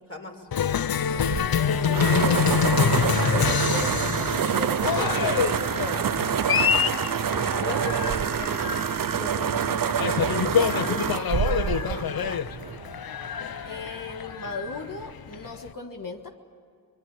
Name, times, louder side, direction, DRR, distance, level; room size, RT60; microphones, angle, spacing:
voice 1, 0.1-0.5 3.2-3.6 7.3-8.8 9.1-11.0 11.4-12.4, left 2 dB, 40° left, 2 dB, 4.1 m, -37 dB
Cheering, 0.5-15.7, left 8 dB, 90° left, 0.6 m, -26 dB
voice 2, 1.1-6.4 13.7-16.3, left 3 dB, 65° left, 3 dB, 1.8 m, -36 dB
sound 1, 1.1-13.0, right 8 dB, 70° right, 0.6 m, -27 dB
sound 2, 4.1-6.5 7.2-9.4 10.3-14.8, left 6 dB, 15° left, 3.1 m, -43 dB
25.5 x 21.5 x 8.6 m, 2.4 s
wide cardioid pair, 55°, 35 cm